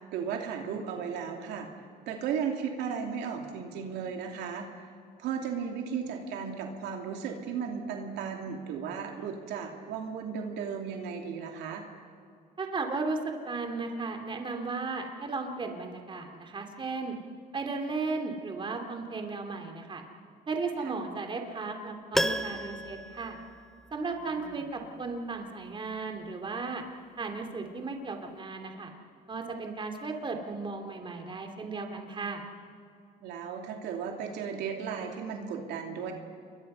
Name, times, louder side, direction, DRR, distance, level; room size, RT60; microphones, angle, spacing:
voice 1, 0.1-1.7 2.1-4.9 5.2-11.8 20.8-20.9 24.1-24.6 33.2-36.1, right 7 dB, 85° right, 2 dB, 2.9 m, -35 dB
voice 2, 12.6-17.2 17.5-20.0 20.5-23.4 23.9-26.8 27.2-28.9 29.3-32.4, right 3 dB, 30° right, 4 dB, 2.8 m, -35 dB
Piano, 22.1-24.2 24.5-24.6, equal, ahead, 1.0 m, -33 dB
28.0 x 23.0 x 5.6 m, 2.3 s
cardioid pair, 110°, 17 cm